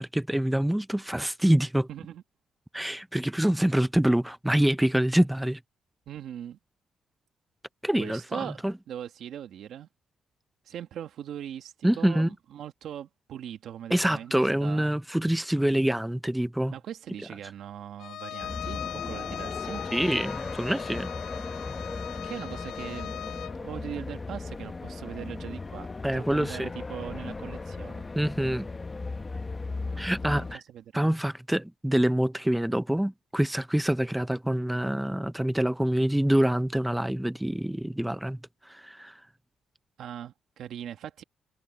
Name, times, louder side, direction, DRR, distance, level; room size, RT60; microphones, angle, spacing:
voice 1, 0.0-1.9 2.7-5.6 7.8-8.7 11.8-12.3 13.9-16.7 19.9-21.1 26.0-26.7 28.1-28.7 30.0-30.6 30.9-38.4 38.7-39.2, right 1 dB, 5° right, 0.6 m, -26 dB
voice 2, 1.9-2.2 6.1-6.6 8.0-9.9 10.7-14.8 16.7-19.8 22.2-28.1 30.2-31.2 40.0-41.2, right 10 dB, 70° right, 1.9 m, -40 dB
Bowed string instrument, 18.0-23.6, left 12 dB, 75° left, 0.3 m, -39 dB
sound 1, 18.4-30.6, left 3 dB, 20° left, 0.9 m, -37 dB
cardioid pair, 130°, 0 cm